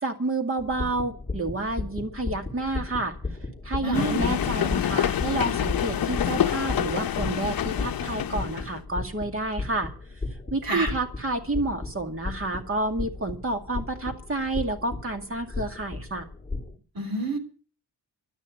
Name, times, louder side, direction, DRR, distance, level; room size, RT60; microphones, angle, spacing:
voice 1, 0.0-3.2 3.6-9.9 10.5-16.3, right 2 dB, 35° right, 5 dB, 2.2 m, -29 dB
sound 1, 0.6-16.8, left 3 dB, 5° left, 2.5 m, -36 dB
voice 2, 3.8-4.3 10.7-10.9 16.9-17.4, right 2 dB, 60° right, 6 dB, 3.3 m, -28 dB
Slow Moving Steam Train Onboard Clickety Clack, 3.9-8.8, left 10 dB, 65° left, 0.7 m, -27 dB
12.0 x 9.9 x 9.0 m, 0.39 s
wide cardioid pair, 165°, 39 cm